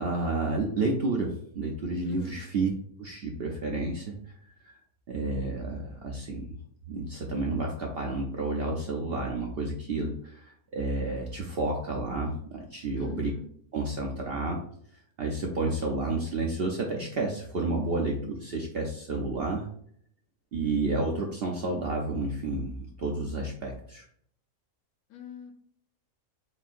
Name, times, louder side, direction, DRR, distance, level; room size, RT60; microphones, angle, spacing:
voice 1, 0.0-2.7 3.0-4.2 4.6-4.8 5.1-6.5 6.9-13.3 13.7-14.6 15.2-19.7 20.5-24.0, right 2 dB, 60° right, 0 dB, 0.6 m, -30 dB
voice 2, 2.0-2.4 12.9-13.5 25.1-25.5, left 6 dB, 80° left, 4 dB, 1.2 m, -43 dB
4.3 x 3.7 x 2.4 m, 0.65 s
omnidirectional pair, 1.6 m